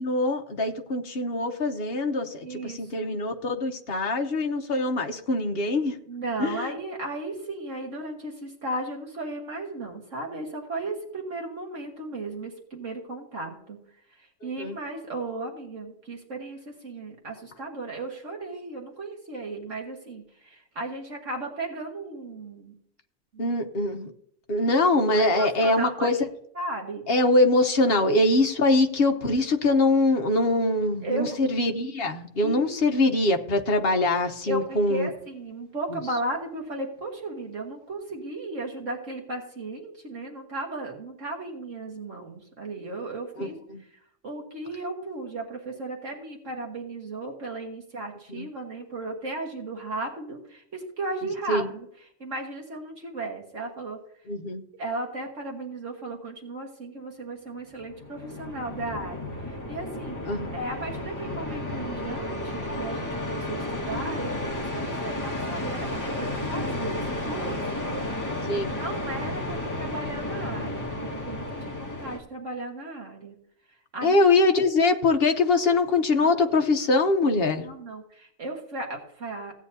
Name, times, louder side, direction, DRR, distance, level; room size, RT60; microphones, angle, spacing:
voice 1, 0.0-6.0 6.4-6.7 14.6-14.8 23.4-24.1 24.5-26.2 27.1-35.1 35.9-36.0 43.4-43.8 48.3-48.5 51.5-51.7 54.3-54.6 60.2-60.6 68.5-68.7 74.0-77.6, left 2 dB, 50° left, 5 dB, 1.1 m, -23 dB
voice 2, 2.4-3.1 6.1-13.8 14.4-22.7 23.3-23.5 24.5-24.7 25.1-26.3 26.6-27.0 27.9-28.1 31.0-31.4 32.4-33.0 34.5-43.6 44.2-51.8 52.2-54.0 54.7-60.2 60.5-67.0 67.3-67.9 68.7-73.3 73.9-74.3 76.2-76.6 77.6-79.5, right 2 dB, 65° right, 0 dB, 1.9 m, -35 dB
sound 1, 57.8-72.2, left 1 dB, 15° left, 1.7 m, -32 dB
16.0 x 9.3 x 2.7 m, 0.69 s
omnidirectional pair, 1.4 m